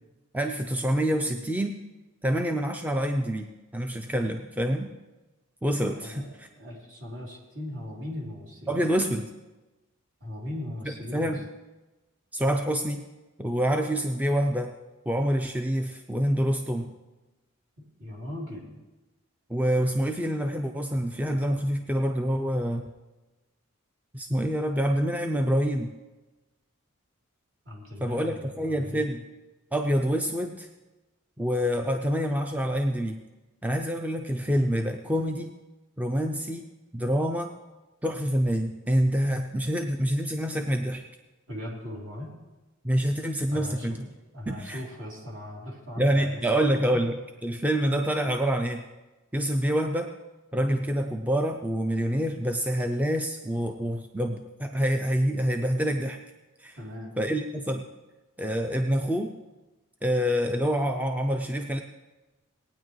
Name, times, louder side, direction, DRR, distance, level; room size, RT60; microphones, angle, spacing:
voice 1, 0.3-1.7 2.2-3.5 3.7-4.9 5.6-6.5 8.7-9.3 10.8-11.4 12.3-13.0 13.4-14.7 15.1-16.9 19.5-22.9 24.1-25.9 28.0-29.2 29.7-30.7 31.4-33.2 33.6-35.5 36.0-36.7 36.9-37.5 38.0-41.0 42.8-44.1 44.5-44.8 46.0-47.1 47.4-48.9 49.3-50.1 50.5-56.2 56.6-56.8 57.2-57.9 58.4-59.3 60.0-61.8, equal, 5° right, 5 dB, 0.4 m, -26 dB
voice 2, 5.9-6.3 6.6-8.8 10.2-11.3 18.0-18.8 27.6-29.1 41.5-42.3 43.5-44.1 44.3-46.4 46.9-47.0 56.8-57.2, left 1 dB, 60° right, -3 dB, 3.2 m, -39 dB
18.5 x 9.4 x 3.1 m, 1.1 s
head